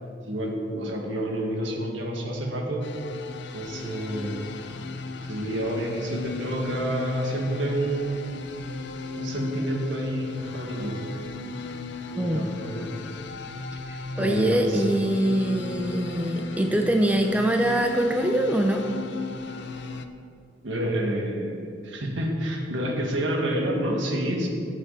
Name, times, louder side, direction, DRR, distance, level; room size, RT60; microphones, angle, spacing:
voice 1, 0.3-2.8 3.5-4.5 5.3-8.3 9.2-11.0 12.1-12.9 14.2-14.9 20.6-21.5 21.8-24.5, right 1 dB, 70° right, 0 dB, 1.8 m, -28 dB
sound 1, 2.8-20.1, left 4 dB, 60° left, 0.6 m, -36 dB
voice 2, 12.2-12.5 13.9-18.8, right 1 dB, 10° right, 3 dB, 0.5 m, -24 dB
15.0 x 7.5 x 4.1 m, 2.4 s
head